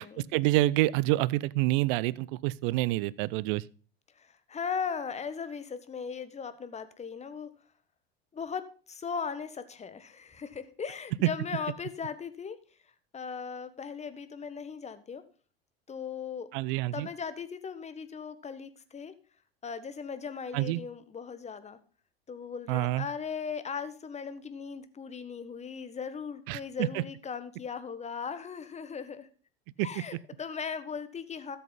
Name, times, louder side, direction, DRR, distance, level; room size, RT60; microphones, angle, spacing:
voice 1, 0.3-3.6 11.2-11.3 16.5-17.1 20.5-20.8 22.7-23.1 26.5-27.0 29.8-29.9, right 17 dB, 55° right, 0.6 m, -27 dB
voice 2, 4.2-7.5 8.3-12.6 13.1-15.2 15.9-16.5 16.9-19.1 19.6-21.8 22.3-29.3 29.8-31.6, left 6 dB, 20° left, 1.4 m, -38 dB
13.0 x 7.8 x 4.0 m
hypercardioid pair, 80°, 30 cm